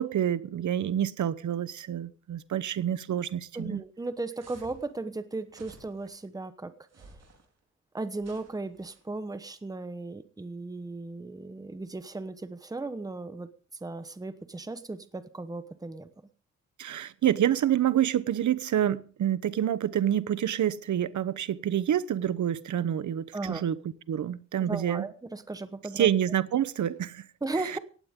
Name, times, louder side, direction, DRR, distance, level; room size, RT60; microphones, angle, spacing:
voice 1, 0.0-3.8 16.8-23.8 24.1-25.1 26.0-27.3 27.6-27.8, right 10 dB, 75° right, 1.0 m, -27 dB
voice 2, 3.5-6.7 7.0-7.2 7.9-13.5 13.8-16.1 23.3-23.7 24.6-26.1 27.4-27.8, right 2 dB, 10° right, 1.1 m, -36 dB
sound 1, 4.4-4.9 5.5-6.2 6.9-7.5 8.2-9.0, right 3 dB, 60° right, 4.4 m, -53 dB
18.0 x 15.5 x 3.7 m
wide cardioid pair, 160°, 30 cm